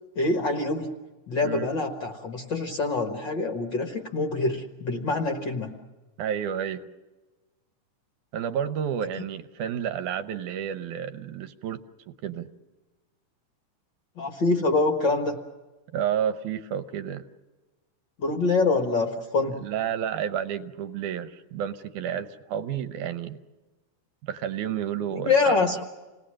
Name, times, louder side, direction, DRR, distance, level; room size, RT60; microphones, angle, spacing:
voice 1, 0.1-0.9 1.3-5.7 9.2-9.3 14.2-15.4 18.2-19.6 25.2-25.8, left 3 dB, 55° left, 4 dB, 1.3 m, -25 dB
voice 2, 6.2-6.9 8.3-11.8 12.1-12.5 15.9-17.3 19.6-23.4 24.2-25.7, right 9 dB, 70° right, 11 dB, 2.2 m, -31 dB
28.0 x 19.0 x 7.5 m, 1.2 s
omnidirectional pair, 3.9 m